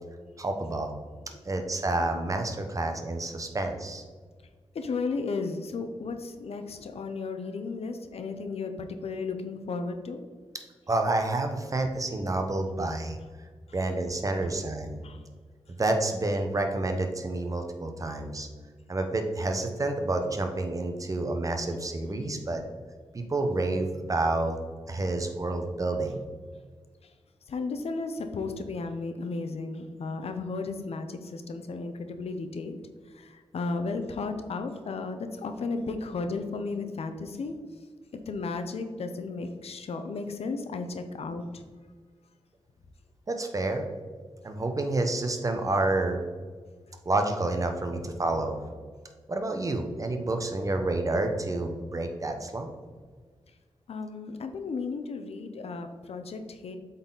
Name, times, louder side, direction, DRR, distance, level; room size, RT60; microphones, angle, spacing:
voice 1, 0.4-0.9 1.4-4.0 10.9-13.2 13.7-15.0 15.7-18.5 18.9-22.6 23.1-24.6 24.9-26.2 43.3-43.8 44.4-46.2 47.0-48.5 49.3-52.7, right 2 dB, 35° right, 5 dB, 0.9 m, -29 dB
voice 2, 4.7-10.2 14.4-14.5 15.0-15.2 22.2-22.6 27.0-27.1 27.5-32.8 33.1-37.6 38.1-41.6 53.9-56.8, left 4 dB, 75° left, 7 dB, 0.7 m, -34 dB
8.0 x 4.1 x 4.0 m, 1.5 s
wide cardioid pair, 95°, 10 cm